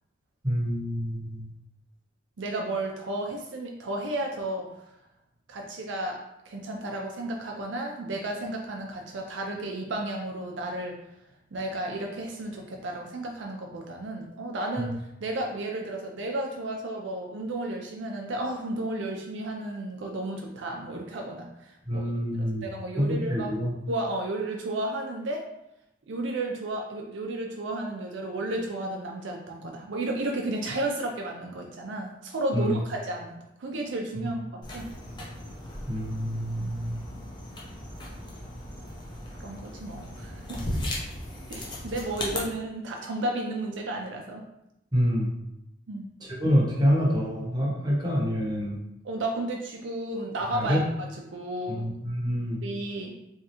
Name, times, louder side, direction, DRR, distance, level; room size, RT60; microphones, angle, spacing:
voice 1, 0.4-1.4 21.9-22.7 23.0-23.7 32.5-32.8 35.9-37.0 44.9-45.3 46.3-48.8 50.5-50.8 51.7-52.6, equal, 20° right, -4 dB, 0.9 m, -26 dB
voice 2, 2.4-4.7 5.5-6.2 6.5-11.0 11.5-22.1 22.4-23.5 23.9-25.4 26.1-34.9 36.6-36.7 39.4-40.8 41.5-44.4 45.9-46.1 49.0-50.8 51.1-51.9 52.6-53.1, right 1 dB, 70° right, 1 dB, 0.5 m, -33 dB
sound 1, 34.6-42.4, left 1 dB, 25° left, 0.7 m, -37 dB
3.6 x 3.1 x 2.9 m, 0.85 s
head